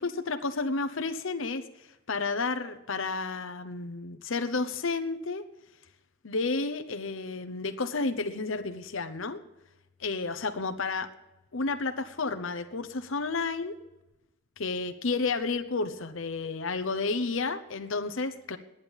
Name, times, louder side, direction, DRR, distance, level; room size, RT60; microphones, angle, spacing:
voice 1, 0.0-1.6 2.1-5.4 6.2-9.4 10.0-11.1 11.5-13.8 14.6-18.6, left 3 dB, 70° left, 8 dB, 0.9 m, -31 dB
11.0 x 8.9 x 9.9 m, 0.94 s
head